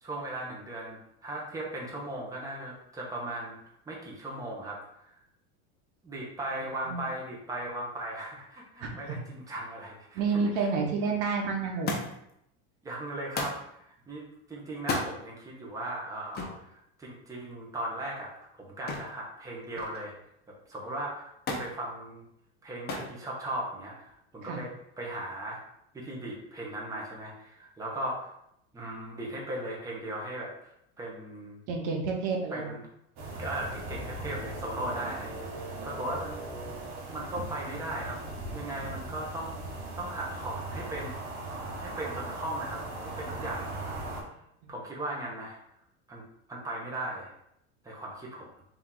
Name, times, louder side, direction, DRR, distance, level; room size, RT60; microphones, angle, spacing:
voice 1, 0.0-3.6 3.9-4.8 6.0-10.7 12.8-18.3 18.6-20.1 20.7-22.2 22.6-24.7 25.0-25.6 25.9-28.3 28.7-30.5 31.0-31.6 32.5-32.8 33.4-36.4 37.1-38.2 38.5-39.6 40.0-41.1 41.8-44.0 44.7-45.6 46.1-46.2 46.5-47.3 47.8-48.5, right 1 dB, 10° right, -3 dB, 0.9 m, -37 dB
voice 2, 8.8-9.2 10.1-11.9 24.4-24.6 31.7-32.8 37.3-37.4 44.6-44.7, right 4 dB, 70° right, 1 dB, 1.0 m, -30 dB
Thump thud, 11.9-12.3 13.3-13.7 14.8-15.1 16.3-16.6 18.9-19.2 19.5-20.1 21.5-21.7 22.9-23.2 24.1-24.6 25.6-25.7, left 3 dB, 25° left, 0.7 m, -34 dB
sound 1, 33.2-44.2, right 2 dB, 50° right, 1.3 m, -39 dB
3.5 x 2.9 x 3.7 m, 0.76 s
supercardioid pair, 125°, 36 cm